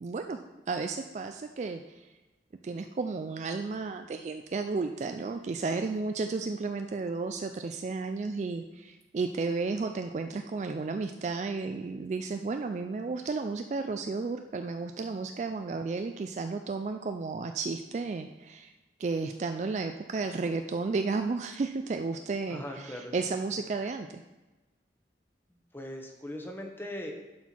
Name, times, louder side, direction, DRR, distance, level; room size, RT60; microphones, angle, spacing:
voice 1, 0.0-2.1 2.6-18.7 19.0-24.2, right 4 dB, 40° right, 6 dB, 0.3 m, -33 dB
voice 2, 22.5-23.1 25.7-27.1, left 1 dB, 10° left, 2 dB, 1.0 m, -39 dB
11.0 x 4.4 x 4.4 m, 1.1 s
head